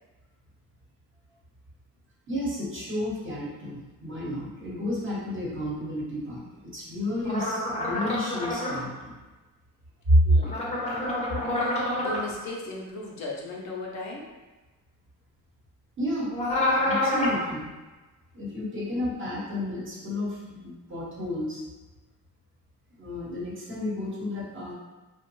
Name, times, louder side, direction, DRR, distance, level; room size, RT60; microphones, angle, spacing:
voice 1, 2.3-9.2 10.1-10.3 16.0-16.3 16.8-17.7 18.3-21.6 23.0-24.7, left 1 dB, 35° right, -5 dB, 1.1 m, -30 dB
sound 1, 7.2-8.8 10.4-12.2 16.3-17.4, left 1 dB, 20° left, 0.7 m, -27 dB
voice 2, 10.2-11.0 11.6-11.7 12.0-14.3 18.8-18.9, left 2 dB, 50° left, -2 dB, 0.6 m, -37 dB
2.5 x 2.1 x 3.0 m, 1.2 s
cardioid pair, 80°, 35 cm